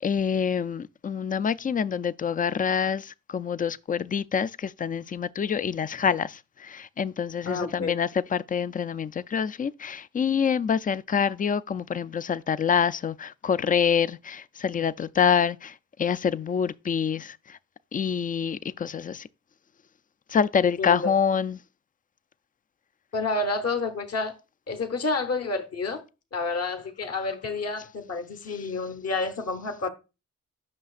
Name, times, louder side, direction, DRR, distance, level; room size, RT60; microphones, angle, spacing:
voice 1, 0.0-17.6 17.9-19.3 20.3-21.6, left 7 dB, 25° left, 0.4 m, -26 dB
voice 2, 7.4-8.0 20.8-21.1 23.1-24.4 24.7-26.0 26.3-29.9, left 3 dB, 50° left, 1.0 m, -29 dB
7.5 x 5.7 x 2.4 m
cardioid pair, 55°, 31 cm